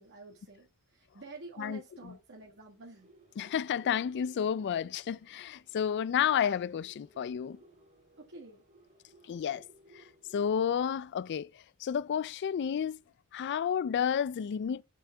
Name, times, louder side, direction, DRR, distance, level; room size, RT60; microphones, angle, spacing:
voice 1, 0.0-3.1 8.2-8.6, right 2 dB, 55° right, 1.7 m, -49 dB
sound 1, 2.9-10.6, right 1 dB, 40° right, 3.2 m, -61 dB
voice 2, 3.4-7.6 9.3-9.6 10.0-10.1 10.3-11.5 11.8-13.0 13.3-14.8, left 8 dB, 50° left, 0.3 m, -31 dB
8.3 x 6.3 x 3.4 m
head